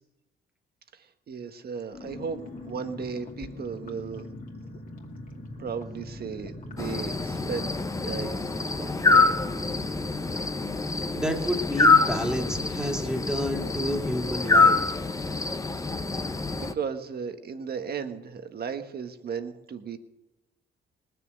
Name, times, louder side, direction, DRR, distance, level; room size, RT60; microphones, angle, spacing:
voice 1, 0.9-4.3 5.6-7.8 8.0-8.5 8.8-9.3 16.3-20.0, right 6 dB, 50° right, 8 dB, 1.5 m, -35 dB
sound 1, 1.9-14.3 14.5-14.6 14.9-15.2, left 2 dB, 40° left, 2.5 m, -43 dB
sound 2, 6.8-16.7, left 3 dB, 15° left, 0.8 m, -25 dB
voice 2, 11.1-14.8, equal, 5° right, 2 dB, 2.3 m, -30 dB
19.5 x 6.9 x 9.2 m, 1.0 s
cardioid pair, 90°, 20 cm